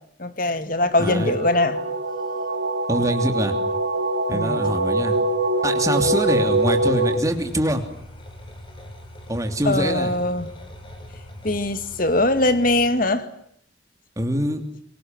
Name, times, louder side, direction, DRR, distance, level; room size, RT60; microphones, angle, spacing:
voice 1, 0.2-1.8 4.3-4.7 9.7-10.5 11.4-13.3, left 2 dB, 50° left, 11 dB, 2.1 m, -21 dB
sound 1, 0.9-7.2, right 2 dB, 70° right, 3.1 m, -23 dB
voice 2, 1.0-1.3 2.9-3.5 4.3-5.2 5.6-7.8 9.3-10.1 14.2-14.6, right 1 dB, 20° right, 6 dB, 3.1 m, -24 dB
sound 2, 6.1-12.9, left 1 dB, 30° left, 5.4 m, -41 dB
25.5 x 24.0 x 9.3 m, 0.67 s
head